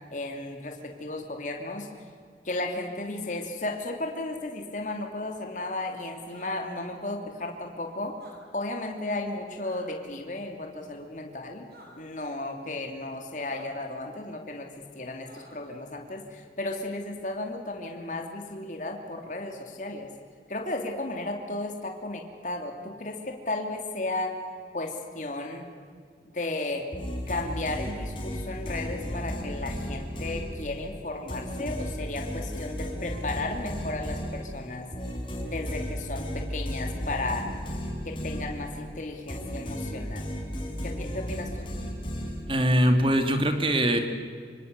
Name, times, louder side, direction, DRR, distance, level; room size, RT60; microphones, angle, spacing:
voice 1, 0.1-1.9 2.4-8.2 8.5-11.6 12.0-20.1 20.5-24.4 24.7-25.7 26.3-26.9 27.3-34.9 35.4-37.5 38.0-40.2 40.8-41.7, left 2 dB, 45° left, 3 dB, 2.9 m, -34 dB
sound 1, 6.2-6.5 8.1-8.3 9.6-9.9 11.7-11.9 13.5-13.7 15.2-15.7, right 2 dB, 60° right, 7.3 m, -51 dB
sound 2, 26.9-30.9 31.3-38.9 39.3-42.8, equal, 30° left, 5.8 m, -34 dB
voice 2, 42.5-44.0, equal, 30° right, 6 dB, 2.6 m, -22 dB
26.0 x 26.0 x 8.1 m, 2.1 s
head